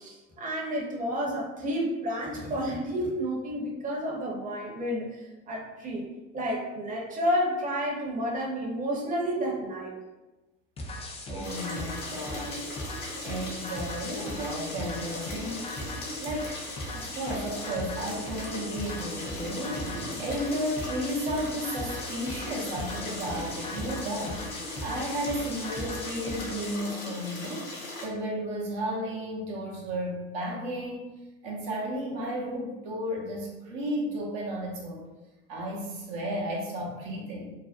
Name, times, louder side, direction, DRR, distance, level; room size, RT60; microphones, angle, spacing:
voice 1, 0.0-6.1 6.3-9.9, equal, 25° right, -2 dB, 0.7 m, -30 dB
sound 1, 10.8-26.8, left 1 dB, 20° left, 0.4 m, -39 dB
voice 2, 11.3-12.7 13.2-15.9 16.2-16.6 16.9-27.7 28.0-31.1 31.4-35.1 35.5-37.5, equal, 75° right, -3 dB, 0.7 m, -33 dB
sound 2, 11.4-28.1, left 1 dB, 60° left, 1.0 m, -39 dB
2.5 x 2.0 x 2.4 m, 1.1 s
supercardioid pair, 85°, 30 cm